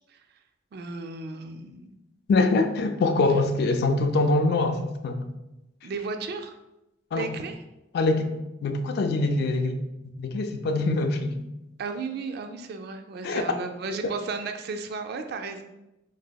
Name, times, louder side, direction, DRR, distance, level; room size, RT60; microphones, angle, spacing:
voice 1, 0.7-1.9 5.8-6.6 7.1-7.6 11.8-15.6, right 4 dB, 55° right, 6 dB, 0.3 m, -34 dB
voice 2, 2.3-5.2 7.1-7.3 7.9-8.3 8.6-9.8 10.2-11.5 13.2-13.5 13.9-14.1, left 3 dB, 55° left, 7 dB, 0.3 m, -24 dB
3.9 x 2.6 x 2.3 m, 0.93 s
head